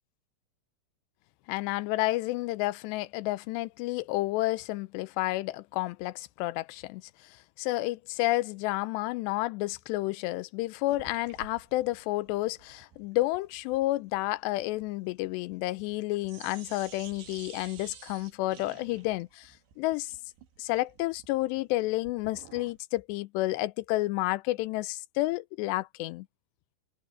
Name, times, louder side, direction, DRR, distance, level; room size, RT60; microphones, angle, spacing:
voice 1, 1.5-7.0 7.6-20.1 20.6-26.3, left 18 dB, 85° left, 2.8 m, -30 dB
sound 1, 10.9-22.8, right 7 dB, 80° right, 5.0 m, -52 dB
omnidirectional pair, 5.0 m